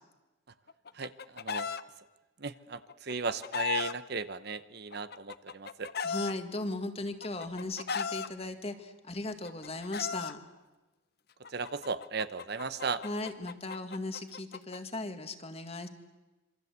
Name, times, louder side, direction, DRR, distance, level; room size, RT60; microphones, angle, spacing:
Chicken rooster, 0.7-1.8 2.9-3.9 4.9-6.3 7.2-8.3 9.3-10.3 11.4-14.8, left 6 dB, 50° left, 0.8 m, -36 dB
voice 1, 0.9-1.7 2.4-5.9 11.5-13.0, right 4 dB, 50° right, 13 dB, 0.9 m, -36 dB
voice 2, 6.0-10.4 13.0-15.9, left 2 dB, 30° left, 8 dB, 1.8 m, -37 dB
27.0 x 24.0 x 8.2 m, 1.1 s
head